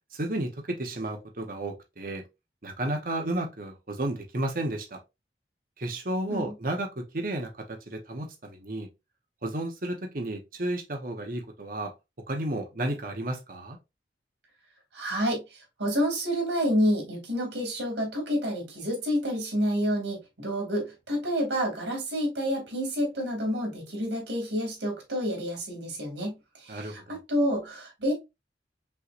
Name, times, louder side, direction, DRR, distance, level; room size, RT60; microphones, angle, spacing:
voice 1, 0.1-2.2 2.6-5.0 5.8-8.9 9.4-11.9 12.3-13.8 26.7-27.2, right 1 dB, 50° right, 0.9 m, -32 dB
voice 2, 14.9-27.0 27.3-28.1, equal, 85° right, 2.5 m, -29 dB
5.5 x 3.1 x 2.5 m
head